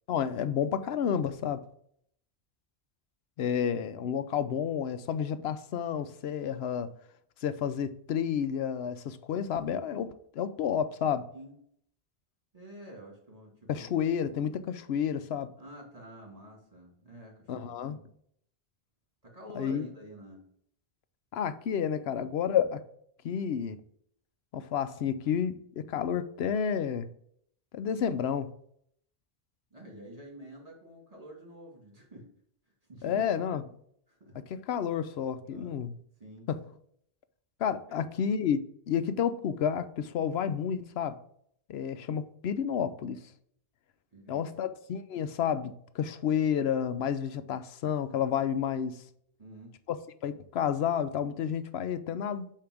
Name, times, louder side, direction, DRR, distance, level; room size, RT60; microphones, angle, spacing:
voice 1, 0.1-1.6 3.4-6.9 7.4-11.2 13.7-15.5 17.5-18.0 19.5-19.9 21.3-22.8 23.2-23.8 24.5-27.1 27.7-28.5 33.0-33.6 34.7-35.9 36.5-36.6 37.6-38.6 38.9-41.1 41.7-43.2 44.3-49.0 49.9-50.0 50.2-52.5, left 8 dB, 80° left, 0.9 m, -30 dB
voice 2, 12.5-14.1 15.6-18.0 19.2-20.5 29.7-32.3 32.9-33.2 34.1-34.3 35.5-35.8 36.2-36.5 37.9-38.0 44.1-44.6 49.4-49.8, right 1 dB, 35° right, 2.1 m, -48 dB
8.5 x 2.8 x 5.9 m
omnidirectional pair, 1.0 m